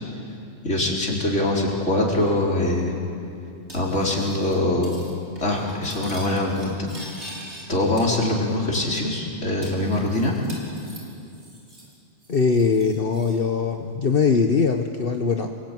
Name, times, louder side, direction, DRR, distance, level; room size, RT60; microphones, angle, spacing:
voice 1, 0.6-2.9 3.7-5.0 5.4-6.7 7.7-10.3, left 1 dB, 75° left, -3 dB, 4.9 m, -23 dB
Cutlery silverware, 3.7-4.5 4.8-5.1 5.4-7.6 8.0-8.7 9.0-9.1 9.6-11.9 12.2-13.4, equal, 65° right, 6.2 m, -43 dB
voice 2, 12.3-15.5, left 5 dB, 50° left, 4 dB, 1.3 m, -21 dB
28.0 x 22.5 x 9.3 m, 2.6 s
omnidirectional pair, 1.2 m